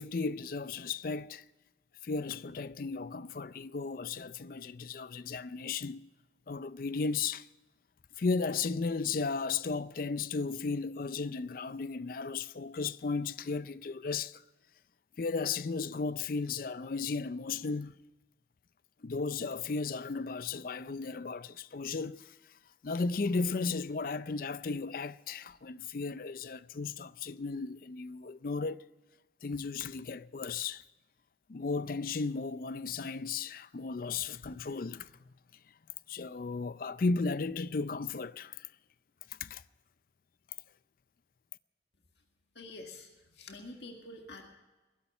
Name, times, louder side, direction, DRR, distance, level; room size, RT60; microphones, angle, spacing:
voice 1, 0.0-1.4 2.0-6.0 6.5-7.5 8.2-14.4 15.2-18.0 19.0-22.3 22.8-28.8 29.4-30.8 31.5-35.1 36.1-38.7 39.4-39.6, left 4 dB, 50° left, 0.5 m, -35 dB
voice 2, 42.6-44.5, left 2 dB, 70° left, 1.9 m, -47 dB
20.5 x 11.5 x 5.5 m
head